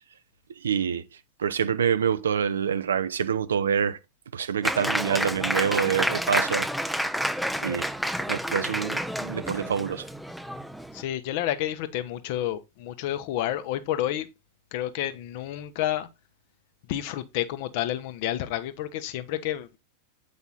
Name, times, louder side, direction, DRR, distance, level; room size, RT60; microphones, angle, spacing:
voice 1, 0.6-1.0 1.4-4.0 4.3-6.7 7.6-7.9 8.3-10.0, right 7 dB, 65° right, 0.6 m, -26 dB
Applause, 4.6-11.0, equal, ahead, 0.6 m, -29 dB
voice 2, 10.9-14.3 14.7-16.1 16.9-19.8, left 12 dB, 50° left, 0.9 m, -30 dB
8.2 x 5.3 x 4.0 m
figure-of-eight pair, 90°, 0 cm